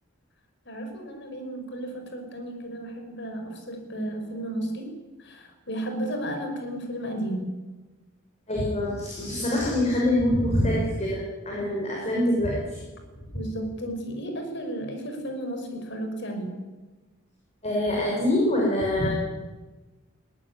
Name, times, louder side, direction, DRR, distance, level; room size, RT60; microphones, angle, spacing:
voice 1, 0.7-4.9 5.2-7.5 13.3-16.5, right 1 dB, 55° left, 5 dB, 5.8 m, -33 dB
voice 2, 8.5-12.8 17.6-19.1, left 1 dB, 30° left, -3 dB, 5.7 m, -25 dB
21.0 x 18.5 x 10.0 m, 1.2 s
head